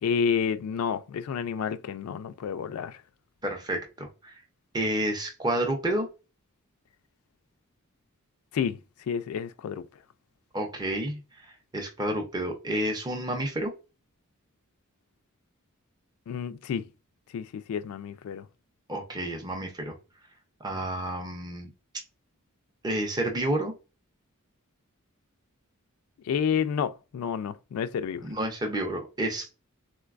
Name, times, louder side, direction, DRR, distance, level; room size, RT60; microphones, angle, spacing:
voice 1, 0.0-3.0 8.5-8.8 9.1-9.8 16.3-16.9 17.3-18.5 26.2-28.3, left 7 dB, 80° left, 0.3 m, -30 dB
voice 2, 3.4-4.4 4.7-6.1 10.5-13.7 18.9-20.0 20.6-21.7 22.8-23.7 28.2-29.5, right 1 dB, 20° right, 0.5 m, -30 dB
3.8 x 2.2 x 2.4 m
head